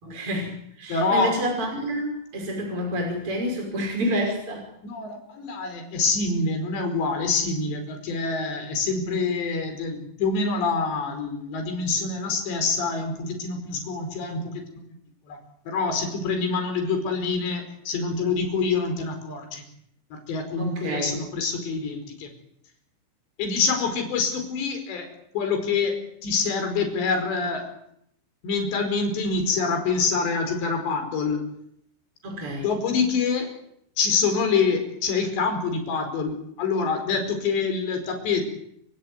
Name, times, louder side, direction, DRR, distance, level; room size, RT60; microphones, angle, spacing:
voice 1, 0.0-4.7 20.6-21.2 32.2-32.7, equal, 30° right, 1 dB, 6.0 m, -29 dB
voice 2, 0.9-1.3 4.8-14.6 15.3-15.4 15.7-19.6 20.1-22.3 23.4-25.1 25.3-27.7 28.4-31.4 32.6-33.6 34.0-38.4, left 4 dB, 70° left, 6 dB, 7.0 m, -26 dB
29.0 x 17.0 x 9.6 m, 0.73 s
omnidirectional pair, 5.3 m